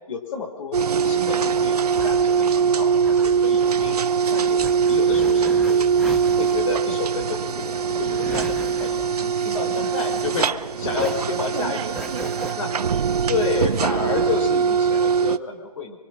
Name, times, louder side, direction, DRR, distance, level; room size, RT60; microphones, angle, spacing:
voice 1, 0.1-4.0 4.3-6.0 6.4-12.0 12.6-12.7 13.3-16.0, left 4 dB, 55° left, 4 dB, 4.9 m, -30 dB
sound 1, 0.7-15.4, right 6 dB, 85° right, 0.8 m, -22 dB
sound 2, 1.6-10.6 10.9-12.5, right 1 dB, ahead, 1.4 m, -37 dB
voice 2, 11.5-13.3, right 8 dB, 55° right, -1 dB, 1.7 m, -36 dB
25.5 x 24.0 x 6.3 m, 1.2 s
hypercardioid pair, 150°, 19 cm